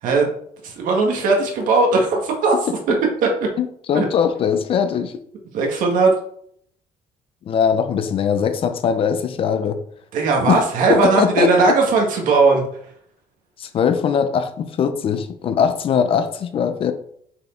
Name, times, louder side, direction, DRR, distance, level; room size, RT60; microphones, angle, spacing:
voice 1, 0.6-2.6 2.9-3.0 3.9-4.1 5.5-6.1 10.1-12.7, right 3 dB, 70° right, 1 dB, 1.8 m, -18 dB
voice 2, 3.6-5.1 7.4-9.8 10.5-10.6 10.9-11.8 13.6-16.9, left 7 dB, 40° left, 10 dB, 0.6 m, -20 dB
6.6 x 4.6 x 4.4 m, 0.67 s
cardioid pair, 175°, 14 cm